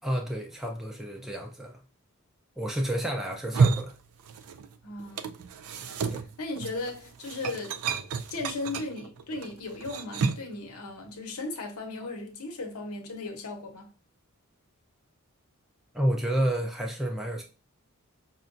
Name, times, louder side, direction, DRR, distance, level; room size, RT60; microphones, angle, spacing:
voice 1, 0.0-1.8 2.6-3.9 6.1-6.2 15.9-17.4, equal, ahead, 0.4 m, -30 dB
sound 1, 3.3-4.7 5.0-10.6, right 5 dB, 85° right, 0.4 m, -30 dB
voice 2, 4.8-5.3 6.4-7.8 8.3-13.9, left 2 dB, 80° left, 0.9 m, -36 dB
5.5 x 2.2 x 2.5 m
head